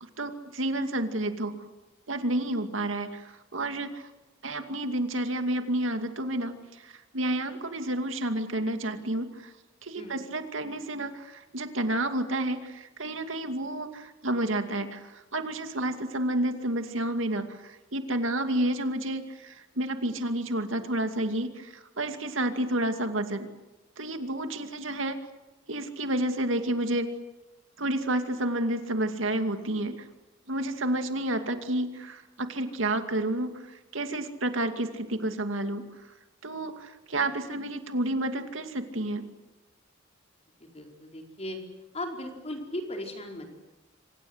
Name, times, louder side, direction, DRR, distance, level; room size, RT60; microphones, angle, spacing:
voice 1, 0.2-1.6 2.1-4.1 4.4-9.5 9.8-23.5 24.0-25.2 25.7-27.1 27.8-30.1 30.5-35.8 36.4-39.3, right 1 dB, 75° right, 7 dB, 2.4 m, -30 dB
voice 2, 40.6-41.6 41.9-43.5, left 1 dB, 35° left, 3 dB, 4.7 m, -37 dB
26.5 x 26.5 x 8.1 m, 1.0 s
head